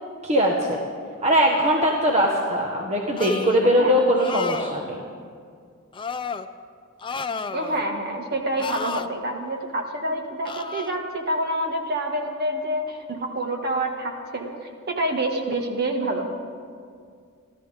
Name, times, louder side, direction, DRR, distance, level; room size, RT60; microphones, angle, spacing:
voice 1, 0.2-0.8 1.2-5.0, equal, 35° right, -1 dB, 1.3 m, -21 dB
sound 1, 3.2-3.7 4.2-4.8 5.9-6.5 7.0-7.9 8.6-9.1 10.5-10.9, left 5 dB, 25° left, 0.5 m, -32 dB
voice 2, 7.5-16.3, right 1 dB, 50° right, 1 dB, 1.9 m, -27 dB
29.5 x 12.5 x 3.6 m, 2.2 s
head